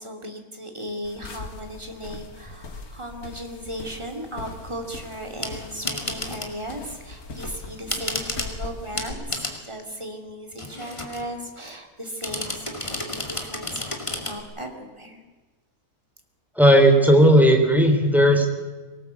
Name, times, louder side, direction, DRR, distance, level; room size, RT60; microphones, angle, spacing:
voice 1, 0.0-15.2, equal, 20° right, 3 dB, 2.7 m, -36 dB
sound 1, 1.0-9.1, left 3 dB, 85° left, 2.4 m, -40 dB
sound 2, 5.3-6.6 7.2-8.6 8.9-9.6 10.5-11.3 12.2-14.4, left 2 dB, 20° left, 2.4 m, -32 dB
voice 2, 16.5-18.5, equal, ahead, 4 dB, 3.1 m, -15 dB
22.0 x 18.5 x 8.3 m, 1.3 s
omnidirectional pair, 1.5 m